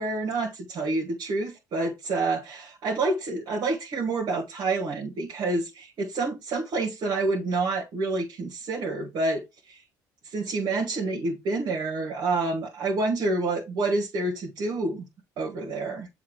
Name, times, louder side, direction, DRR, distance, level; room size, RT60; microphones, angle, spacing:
voice 1, 0.0-9.8 10.2-15.1 15.4-16.1, right 3 dB, 60° right, 1.9 m, -28 dB
7.3 x 2.8 x 4.8 m
hypercardioid pair, 65°, 9 cm